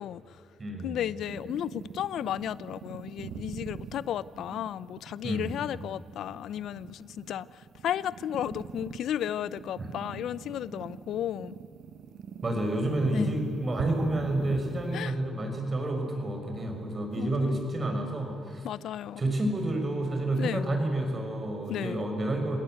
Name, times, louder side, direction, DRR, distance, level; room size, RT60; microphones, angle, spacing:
voice 1, 0.0-0.4 0.8-11.6 13.1-13.3 14.9-15.2 17.2-17.7 18.6-19.2 20.4-20.7 21.7-22.1, left 11 dB, 75° left, 0.5 m, -34 dB
voice 2, 0.6-1.0 5.2-5.6 12.4-18.7 19.2-22.6, right 1 dB, 35° right, 6.1 m, -29 dB
sound 1, 1.3-15.0, right 7 dB, 70° right, 1.4 m, -43 dB
29.0 x 18.0 x 7.9 m
cardioid pair, 90°, 0 cm